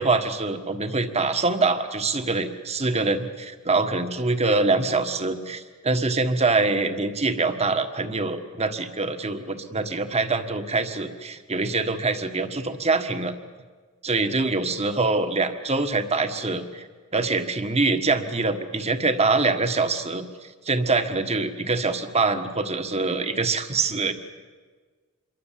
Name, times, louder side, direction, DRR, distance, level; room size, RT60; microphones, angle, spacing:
voice 1, 0.0-13.3 14.0-16.9 17.1-20.3 20.6-24.1, right 3 dB, 30° right, 8 dB, 1.6 m, -24 dB
27.0 x 23.5 x 7.6 m, 1.4 s
head